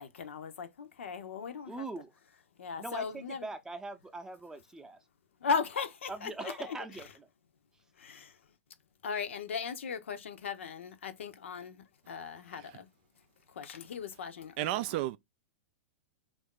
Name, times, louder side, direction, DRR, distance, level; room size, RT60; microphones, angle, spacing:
voice 1, 0.0-1.9 2.6-3.5 5.4-6.8 8.0-8.4 9.0-12.9 13.5-15.1, left 6 dB, 70° left, 0.6 m, -37 dB
voice 2, 1.7-2.1 2.8-5.0 6.1-7.3, right 3 dB, 10° right, 0.6 m, -42 dB
voice 3, 14.6-15.2, right 16 dB, 50° right, 0.3 m, -31 dB
3.5 x 2.6 x 3.6 m
figure-of-eight pair, 100°, 7 cm